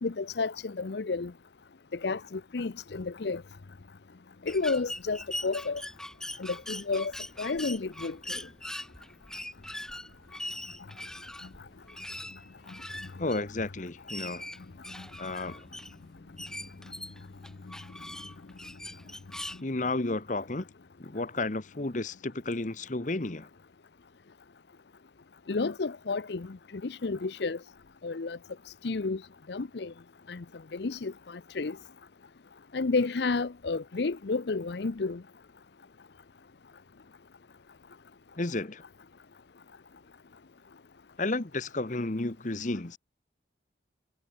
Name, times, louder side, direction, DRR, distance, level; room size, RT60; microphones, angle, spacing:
voice 1, 0.0-1.3 2.0-3.4 4.5-5.8 6.4-7.1 7.4-8.4 25.5-26.6 26.8-27.6 28.0-28.4 28.8-29.2 29.5-29.9 30.3-30.4 30.7-31.8 32.7-35.2, left 3 dB, 65° left, 0.6 m, -31 dB
sound 1, 4.5-19.6, left 1 dB, 5° left, 0.5 m, -42 dB
voice 2, 13.2-14.4 15.2-15.7 19.6-20.7 21.0-23.5 38.4-38.8 41.2-43.0, left 2 dB, 40° left, 1.1 m, -32 dB
head